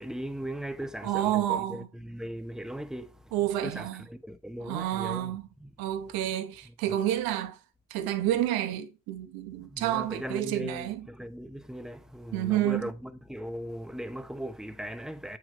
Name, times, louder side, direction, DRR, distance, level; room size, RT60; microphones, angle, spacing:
voice 1, 0.0-3.2 3.6-5.3 5.6-5.7 9.7-15.4, equal, ahead, 0.8 m, -38 dB
voice 2, 1.0-1.9 3.3-4.0 4.6-5.5 5.8-7.6 7.9-11.0 12.3-12.9, right 13 dB, 70° right, 1.0 m, -29 dB
7.4 x 4.8 x 3.0 m
hypercardioid pair, 65°, 37 cm